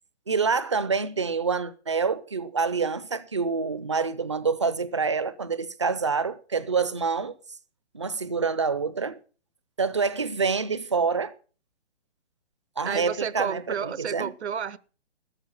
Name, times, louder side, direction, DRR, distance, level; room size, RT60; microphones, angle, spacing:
voice 1, 0.3-7.4 7.9-9.2 9.8-11.3 12.8-14.3, right 5 dB, 25° right, 0.5 m, -27 dB
voice 2, 12.8-14.8, right 7 dB, 75° right, 0.9 m, -31 dB
13.0 x 7.9 x 7.2 m
hypercardioid pair, 175°, 34 cm